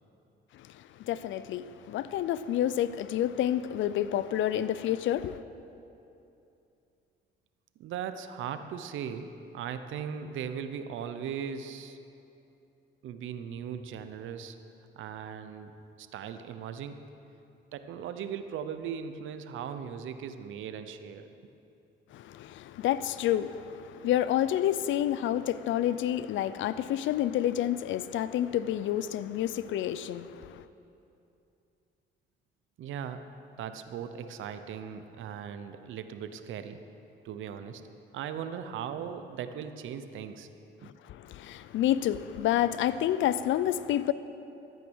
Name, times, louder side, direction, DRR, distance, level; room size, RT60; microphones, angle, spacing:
voice 1, 0.5-5.4 22.1-30.6 40.8-44.1, left 11 dB, 75° left, 0.5 m, -29 dB
voice 2, 7.8-12.0 13.0-14.6 14.9-17.0 17.7-21.3 32.8-33.2 33.6-36.8 37.2-37.8 38.1-40.5, right 8 dB, 80° right, 0.8 m, -38 dB
14.0 x 9.2 x 6.3 m
cardioid pair, 90°, 20 cm